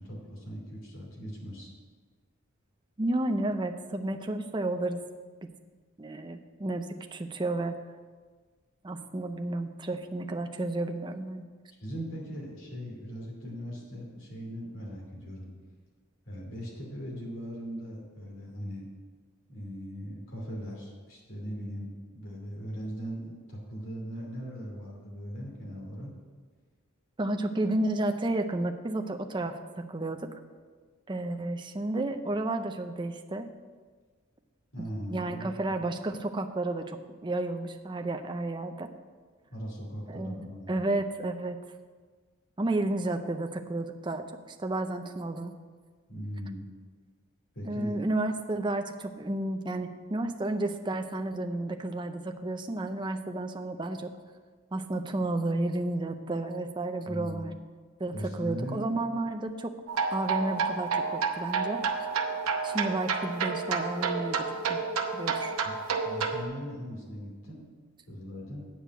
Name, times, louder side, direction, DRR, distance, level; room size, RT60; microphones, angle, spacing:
voice 1, 0.0-1.7 11.8-15.5 16.3-18.9 19.5-26.1 34.7-35.5 39.5-40.7 46.1-46.7 47.5-48.0 57.1-57.4 58.1-58.8 65.6-65.8 66.0-67.7 68.1-68.7, equal, 65° left, -2 dB, 2.8 m, -39 dB
voice 2, 3.0-5.0 5.4-5.5 6.0-7.8 8.8-11.5 27.2-30.3 31.1-33.5 35.1-38.9 40.1-41.6 42.6-45.5 47.7-54.1 54.7-57.5 58.0-59.7 60.1-61.8 62.6-64.4 64.7-64.8 65.1-65.6, right 2 dB, 20° right, 6 dB, 0.5 m, -32 dB
sound 1, 59.9-66.4, right 5 dB, 80° right, 0.8 m, -30 dB
9.2 x 5.1 x 7.7 m, 1.5 s
head